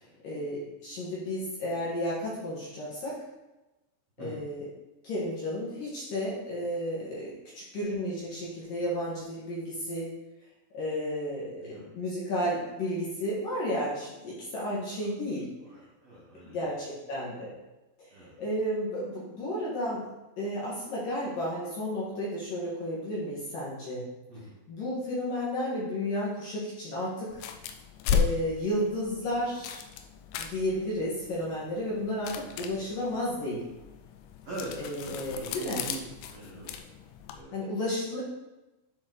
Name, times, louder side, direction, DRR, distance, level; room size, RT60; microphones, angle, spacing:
voice 1, 0.2-3.2 4.2-4.6 5.0-10.1 10.7-15.5 16.4-17.5 18.4-20.1 20.4-24.1 24.7-27.4 28.1-29.8 30.4-33.6 34.8-35.8 37.5-38.2, equal, 60° left, -7 dB, 2.5 m, -32 dB
voice 2, 11.5-11.9 15.0-15.1 15.4-16.7 18.1-18.5 24.3-24.6 34.4-36.8 37.3-37.6, right 2 dB, 75° right, -8 dB, 1.4 m, -43 dB
sound 1, 27.3-37.4, left 7 dB, 85° left, 2.9 m, -36 dB
11.5 x 4.2 x 4.0 m, 1.0 s
omnidirectional pair, 5.8 m